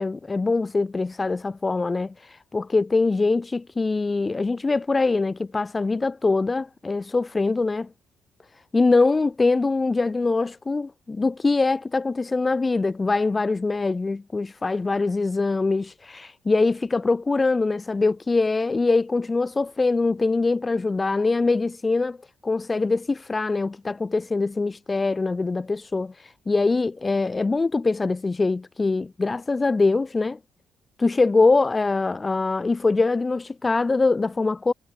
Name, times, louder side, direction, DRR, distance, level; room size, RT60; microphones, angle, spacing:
voice 1, 0.0-7.9 8.7-22.2 22.4-30.4 31.0-34.7, left 3 dB, 25° left, 3.2 m, -23 dB
cardioid pair, 90°, 0 cm